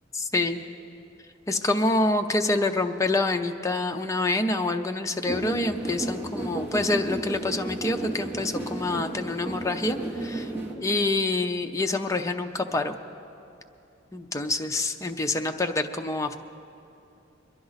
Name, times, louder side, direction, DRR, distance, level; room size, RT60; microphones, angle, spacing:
voice 1, 0.1-0.6 1.5-10.5 10.8-12.9 14.1-16.3, left 2 dB, 15° left, 5 dB, 0.5 m, -26 dB
sound 1, 5.3-10.7, right 1 dB, 10° right, 1.3 m, -33 dB
23.0 x 10.5 x 4.0 m, 2.7 s
head